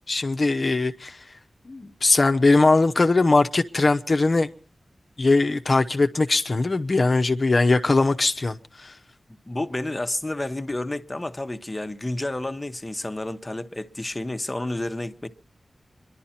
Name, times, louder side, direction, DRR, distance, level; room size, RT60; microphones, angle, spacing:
voice 1, 0.1-1.2 1.7-4.5 5.2-8.9, left 3 dB, 50° left, 0.8 m, -20 dB
voice 2, 9.4-15.3, left 1 dB, 25° left, 1.0 m, -30 dB
24.5 x 11.5 x 4.3 m
wide cardioid pair, 60°, 0 cm